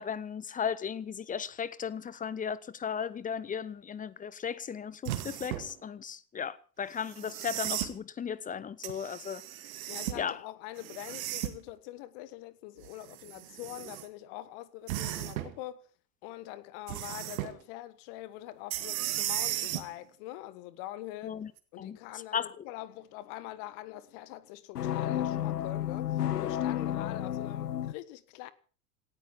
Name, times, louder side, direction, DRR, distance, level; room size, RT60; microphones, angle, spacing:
voice 1, 0.0-9.4 10.2-10.4 21.2-21.5 21.8-22.0 22.3-22.6 26.8-26.9, left 7 dB, 15° left, 0.9 m, -36 dB
sound 1, 5.0-5.7 7.1-7.9 8.8-10.2 10.8-11.7 12.8-14.0 14.9-15.5 16.9-17.5 18.7-19.9 21.6-21.7, right 14 dB, 60° right, 2.2 m, -35 dB
voice 2, 9.9-15.9 16.2-21.4 21.7-28.5, left 15 dB, 45° left, 1.3 m, -44 dB
sound 2, 24.8-27.9, left 11 dB, 75° left, 0.9 m, -31 dB
18.0 x 13.0 x 5.9 m
figure-of-eight pair, 85°, 48 cm